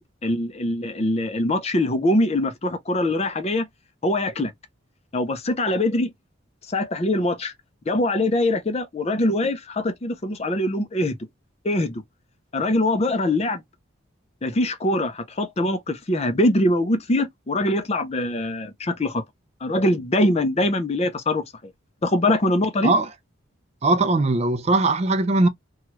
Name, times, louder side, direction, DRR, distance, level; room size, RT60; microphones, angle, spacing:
voice 1, 0.0-3.7 4.0-4.5 5.1-6.1 6.7-7.5 7.9-11.2 11.6-12.0 12.5-13.6 14.4-19.2 19.6-21.4 22.0-22.9, left 1 dB, 30° left, 0.5 m, -23 dB
voice 2, 23.8-25.5, right 2 dB, 30° right, 0.4 m, -20 dB
3.0 x 2.3 x 2.8 m
head